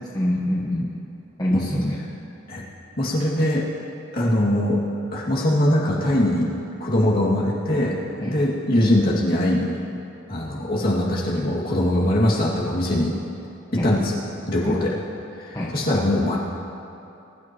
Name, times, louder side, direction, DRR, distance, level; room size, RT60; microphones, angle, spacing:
voice 1, 0.1-0.9 1.4-2.0 8.2-8.4 13.8-13.9 14.6-14.8 15.5-15.7, left 1 dB, 20° left, -5 dB, 1.2 m, -25 dB
voice 2, 3.0-3.7 4.1-4.8 5.1-6.5 6.8-9.8 10.3-13.2 13.7-14.2 14.5-14.9 15.4-16.4, left 1 dB, 45° left, -5 dB, 2.3 m, -22 dB
22.0 x 12.0 x 3.1 m, 2.8 s
head